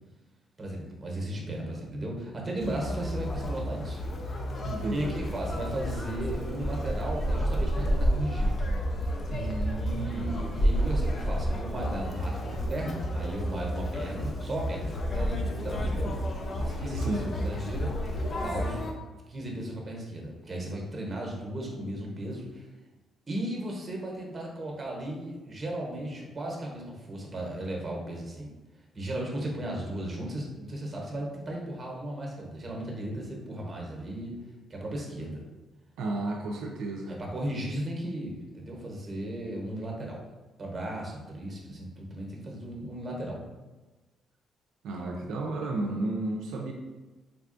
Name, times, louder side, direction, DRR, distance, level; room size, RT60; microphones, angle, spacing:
voice 1, 0.6-4.0 4.9-8.5 9.8-16.1 16.6-17.9 18.4-18.8 19.3-22.7 23.3-28.5 28.9-34.3 34.7-35.4 37.1-40.2 40.6-43.4, right 1 dB, 30° right, -1 dB, 0.8 m, -36 dB
Conversation, 2.6-18.9, equal, 45° left, 0.4 m, -30 dB
voice 2, 4.6-5.1 9.3-10.3 17.0-17.3 36.0-37.2 44.8-46.7, right 2 dB, 85° right, 0 dB, 0.3 m, -33 dB
3.6 x 2.3 x 2.5 m, 1.2 s
cardioid pair, 90°, 0 cm